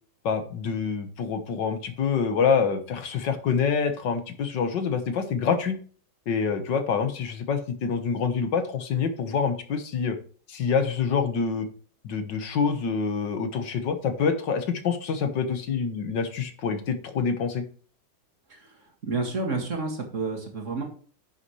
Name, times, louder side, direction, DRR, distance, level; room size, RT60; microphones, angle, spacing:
voice 1, 0.2-5.8 6.3-10.2 10.5-11.7 12.0-17.6, left 6 dB, 80° left, 8 dB, 1.9 m, -26 dB
voice 2, 19.0-20.8, right 3 dB, 45° right, 2 dB, 2.2 m, -30 dB
11.0 x 7.1 x 3.1 m, 0.43 s
omnidirectional pair, 1.9 m